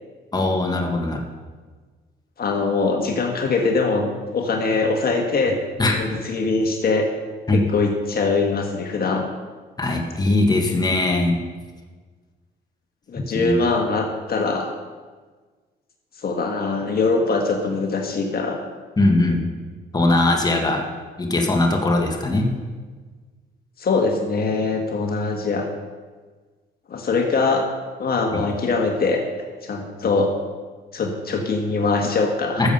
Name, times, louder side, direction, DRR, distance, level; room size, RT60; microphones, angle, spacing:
voice 1, 0.3-1.2 5.8-6.1 7.5-7.6 9.8-11.4 13.2-13.6 19.0-19.4 19.9-20.9 21.2-22.5 28.3-28.4 32.6-32.7, left 2 dB, 20° left, 1 dB, 1.8 m, -20 dB
voice 2, 2.4-4.1 4.3-5.6 5.9-7.1 7.5-9.2 13.1-14.7 16.2-18.6 23.8-25.7 26.9-27.6 28.0-29.2 29.6-30.3 30.9-32.7, left 3 dB, 50° left, 3 dB, 1.6 m, -22 dB
13.5 x 7.3 x 5.6 m, 1.4 s
cardioid pair, 90°, 20 cm